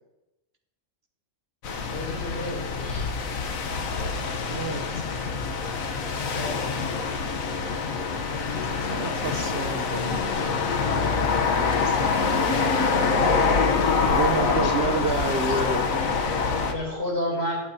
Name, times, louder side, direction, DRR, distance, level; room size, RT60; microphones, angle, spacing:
sound 1, 1.6-16.7, left 4 dB, 90° left, 1.4 m, -25 dB
voice 1, 1.9-3.1 6.3-7.0 16.6-17.6, left 1 dB, 50° left, -2 dB, 3.9 m, -31 dB
voice 2, 4.2-5.0 8.8-10.2 14.0-16.2, right 3 dB, 55° right, 6 dB, 1.0 m, -29 dB
voice 3, 11.3-13.0 13.3-14.9, left 3 dB, 65° left, 0 dB, 1.5 m, -38 dB
20.5 x 7.6 x 2.8 m, 0.93 s
omnidirectional pair, 1.4 m